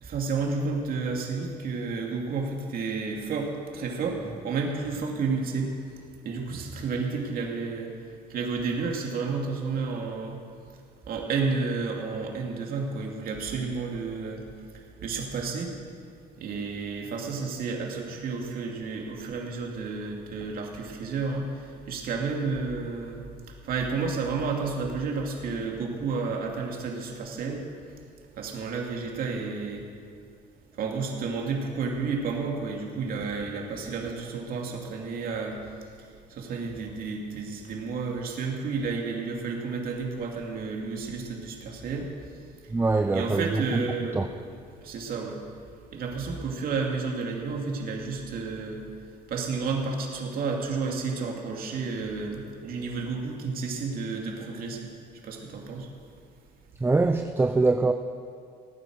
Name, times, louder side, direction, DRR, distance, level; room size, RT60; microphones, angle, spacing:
voice 1, 0.0-4.2 4.4-5.7 6.2-7.9 8.3-10.4 11.1-14.4 15.0-15.7 16.4-23.2 23.6-27.6 28.4-29.8 30.8-35.6 36.3-42.1 43.1-44.2 44.8-45.4 45.9-48.8 49.3-54.9 55.2-55.9, right 4 dB, 60° right, 0 dB, 2.6 m, -31 dB
voice 2, 42.7-43.8 44.1-44.3 56.8-57.9, right 3 dB, 15° right, 7 dB, 0.6 m, -23 dB
17.0 x 9.7 x 6.5 m, 2.4 s
cardioid pair, 110°, 17 cm